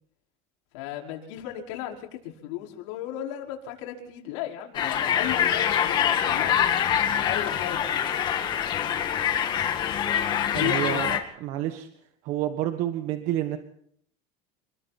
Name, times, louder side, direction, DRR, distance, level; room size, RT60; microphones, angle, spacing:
voice 1, 0.7-6.6 7.2-8.1 10.5-11.0, left 12 dB, 90° left, 0 dB, 5.2 m, -35 dB
sound 1, 4.7-11.2, left 9 dB, 30° left, 2.1 m, -25 dB
voice 2, 10.4-11.9 12.2-13.6, right 12 dB, 50° right, 7 dB, 1.5 m, -29 dB
28.0 x 21.5 x 4.3 m, 0.66 s
cardioid pair, 180°, 15 cm